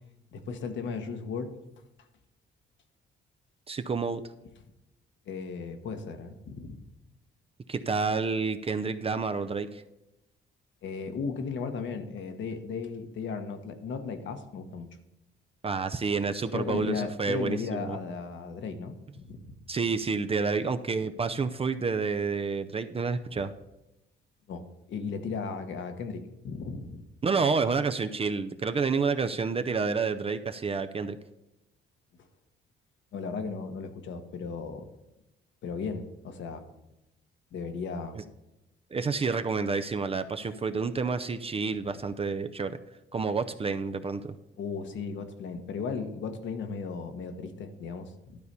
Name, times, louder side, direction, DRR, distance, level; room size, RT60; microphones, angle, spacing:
voice 1, 0.3-1.5 5.3-6.8 10.8-14.9 16.5-19.6 24.5-27.1 33.1-34.9 35.6-36.7 37.5-38.2 44.6-48.4, left 5 dB, 70° left, 7 dB, 1.2 m, -36 dB
voice 2, 3.7-4.2 7.7-9.8 15.6-18.0 19.7-23.5 27.2-31.2 38.9-42.8 43.1-44.2, right 4 dB, 30° right, 9 dB, 0.6 m, -29 dB
12.0 x 4.1 x 6.7 m, 0.94 s
cardioid pair, 90°, 20 cm